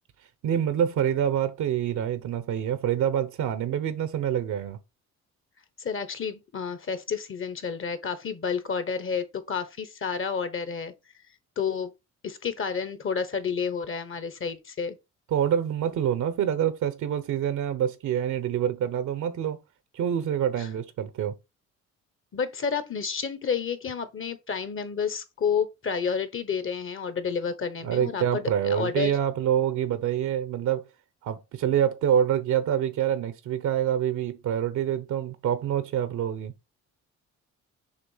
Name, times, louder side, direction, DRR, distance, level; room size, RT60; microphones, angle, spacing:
voice 1, 0.4-4.8 15.3-19.6 19.9-21.3 27.8-30.9 31.2-36.5, right 9 dB, 75° right, 0.9 m, -26 dB
voice 2, 5.8-10.9 11.6-11.9 12.2-15.0 20.6-20.7 22.3-29.1, left 6 dB, 45° left, 1.0 m, -30 dB
6.7 x 2.6 x 5.6 m
cardioid pair, 90°, 30 cm